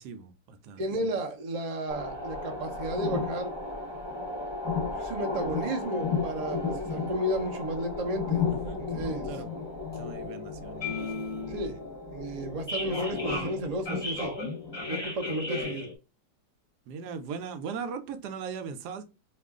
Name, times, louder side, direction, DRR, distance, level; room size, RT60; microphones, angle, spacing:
voice 1, 0.0-1.1 8.5-8.9 9.2-9.5 10.0-11.1 16.9-19.0, right 6 dB, 80° right, 1.1 m, -39 dB
voice 2, 0.8-3.5 5.0-8.5 8.9-9.3 11.5-11.8 12.1-14.3 14.9-15.9, right 1 dB, 60° right, 0.4 m, -33 dB
sound 1, 1.9-15.9, left 4 dB, 20° left, 0.8 m, -33 dB
3.0 x 2.4 x 3.5 m
omnidirectional pair, 1.8 m